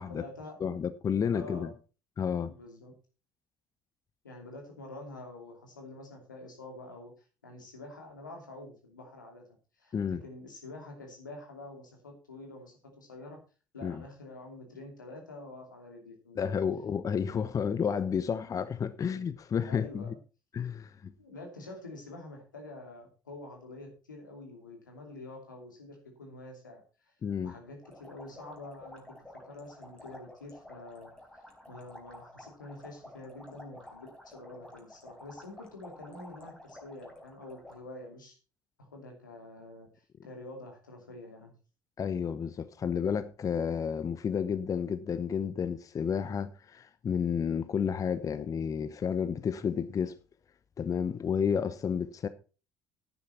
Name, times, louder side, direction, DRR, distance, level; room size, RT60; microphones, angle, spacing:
voice 1, 0.0-0.6 1.2-1.7 2.4-2.9 4.2-9.4 9.8-13.4 13.7-16.5 19.7-20.2 21.2-27.1 27.4-29.0 29.4-38.4 38.8-41.5, left 2 dB, 85° left, 2.8 m, -47 dB
voice 2, 0.6-1.7 2.2-2.5 9.9-10.2 13.8-14.0 16.4-20.0 20.5-21.1 27.2-27.5 42.0-50.2 50.8-52.3, left 7 dB, 35° left, 0.8 m, -31 dB
sound 1, 27.8-37.8, left 1 dB, 10° left, 4.3 m, -51 dB
11.0 x 9.7 x 4.3 m
figure-of-eight pair, 55°, 10 cm